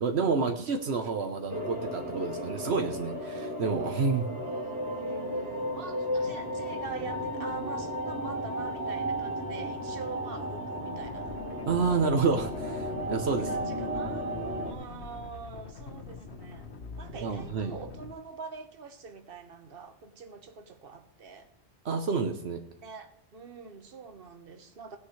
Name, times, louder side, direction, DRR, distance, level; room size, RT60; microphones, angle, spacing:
voice 1, 0.0-4.3 11.7-13.5 17.1-17.7 21.8-22.6, right 4 dB, 80° right, 5 dB, 1.2 m, -29 dB
sound 1, 1.5-14.7, equal, 15° right, 2.8 m, -34 dB
voice 2, 4.4-11.4 13.4-16.7 16.9-21.5 22.8-25.0, right 5 dB, 60° right, 7 dB, 1.3 m, -45 dB
sound 2, 10.8-18.1, left 4 dB, 85° left, 1.5 m, -45 dB
18.0 x 9.7 x 3.2 m, 0.70 s
omnidirectional pair, 1.1 m